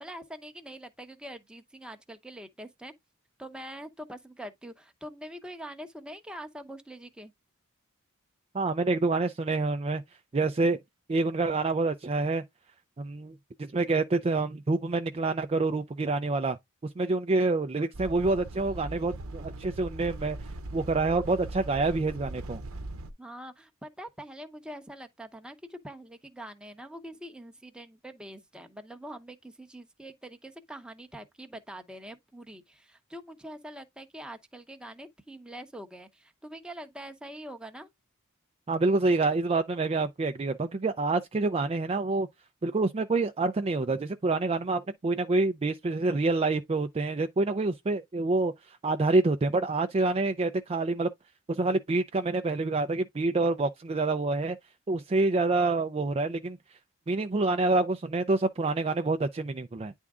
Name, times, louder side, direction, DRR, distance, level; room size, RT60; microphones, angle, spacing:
voice 1, 0.0-2.9 3.4-7.3 23.2-37.9, right 1 dB, 5° right, 0.8 m, -44 dB
voice 2, 8.5-10.0 10.3-10.8 11.1-12.4 13.0-16.6 17.0-20.4 20.7-22.6 38.7-42.3 42.6-51.1 51.5-54.6 54.9-56.6 57.1-59.9, right 3 dB, 30° right, 0.4 m, -27 dB
sound 1, 17.9-23.1, right 2 dB, 70° right, 0.9 m, -40 dB
9.6 x 3.5 x 3.6 m
head